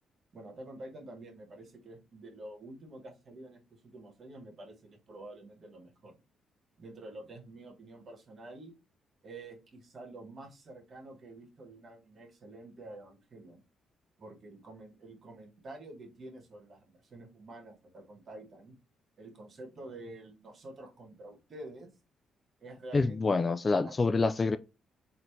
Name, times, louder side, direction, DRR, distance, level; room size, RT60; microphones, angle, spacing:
voice 1, 0.3-6.2 6.8-8.7 9.2-13.6 14.2-18.7 19.2-21.9 22.6-23.4 23.8-23.9, right 2 dB, 45° right, 1.4 m, -48 dB
voice 2, 22.9-24.6, left 3 dB, 30° left, 0.3 m, -27 dB
4.1 x 2.7 x 3.1 m
cardioid pair, 90°, 0 cm